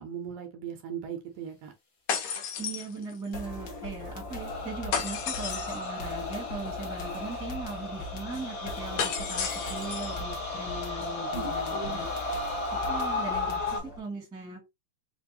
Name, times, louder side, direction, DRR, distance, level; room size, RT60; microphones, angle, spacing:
voice 1, 0.0-1.7 11.3-12.0, right 8 dB, 75° right, 2.0 m, -38 dB
sound 1, 2.1-3.4 4.9-5.9 9.0-10.2, left 7 dB, 70° left, 1.9 m, -33 dB
voice 2, 2.6-12.1 12.7-14.6, right 3 dB, 5° right, 0.9 m, -39 dB
sound 2, 3.3-14.0, left 1 dB, 85° left, 1.0 m, -41 dB
sound 3, 4.2-13.8, left 3 dB, 40° left, 1.2 m, -35 dB
5.1 x 2.2 x 2.7 m
omnidirectional pair, 3.7 m